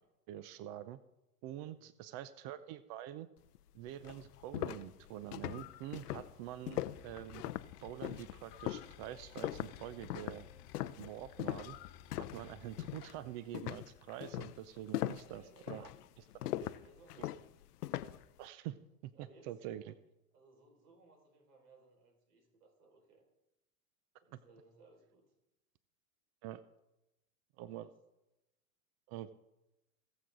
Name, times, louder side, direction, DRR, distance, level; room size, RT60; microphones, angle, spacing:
voice 1, 0.3-1.0 1.4-3.3 3.7-7.4 7.8-10.5 11.0-11.8 12.2-15.9 17.2-17.3 18.4-18.8 19.0-19.1 19.4-19.9 26.4-26.6 27.6-27.9 29.1-29.3, right 12 dB, 40° right, 15 dB, 0.6 m, -46 dB
sound 1, 3.6-3.7 4.0-12.5 12.8-13.2 13.5-18.3, left 14 dB, 80° left, 0.7 m, -40 dB
sound 2, 3.9-13.6, left 14 dB, 20° left, 0.3 m, -61 dB
sound 3, 6.9-13.1, left 11 dB, 50° left, 1.2 m, -57 dB
voice 2, 15.1-15.9 16.4-17.5 19.1-19.5 20.3-23.3 24.2-25.3 27.8-27.9, right 3 dB, 80° right, 1 dB, 5.2 m, -63 dB
19.0 x 7.9 x 3.8 m, 0.94 s
hypercardioid pair, 120°, 46 cm